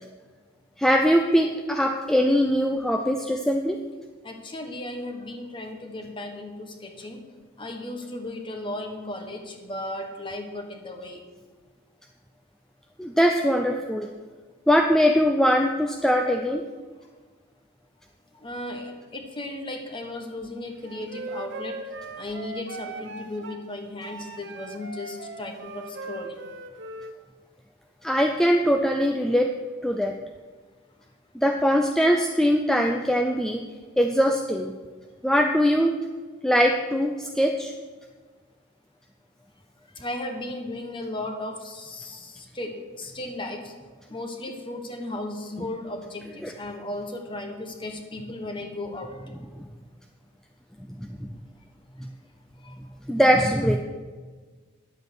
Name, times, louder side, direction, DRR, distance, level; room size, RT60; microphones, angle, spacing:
voice 1, 0.8-3.8 13.0-14.1 14.7-16.6 28.0-29.5 29.8-30.1 31.3-33.6 34.0-34.7 35.2-36.0 36.4-37.7 46.4-46.5 49.6-49.7 51.0-51.3 53.1-53.8, equal, ahead, 3 dB, 0.5 m, -21 dB
voice 2, 4.2-7.3 7.6-11.3 18.3-21.8 22.2-26.4 39.9-43.7 44.1-49.2 52.6-52.8, left 1 dB, 25° left, 4 dB, 1.3 m, -35 dB
Wind instrument woodwind instrument, 20.8-23.6 24.0-27.1, right 2 dB, 55° right, 0.8 m, -39 dB
11.0 x 8.0 x 6.2 m, 1.4 s
head